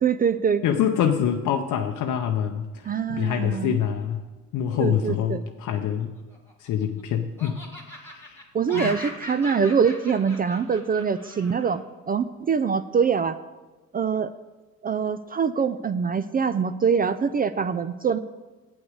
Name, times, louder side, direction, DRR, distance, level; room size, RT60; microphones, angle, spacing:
voice 1, 0.0-0.6 2.9-3.8 4.8-5.4 8.5-13.4 13.9-14.3 14.8-18.2, right 6 dB, 30° right, 12 dB, 0.4 m, -24 dB
voice 2, 0.6-4.2 4.5-6.1 6.6-7.6 7.9-8.4 8.7-8.9, left 9 dB, 85° left, 4 dB, 0.6 m, -25 dB
Laughter, 6.2-7.0 7.4-11.8, left 1 dB, 10° left, 2.1 m, -40 dB
8.1 x 5.9 x 7.9 m, 1.2 s
cardioid pair, 90°, 30 cm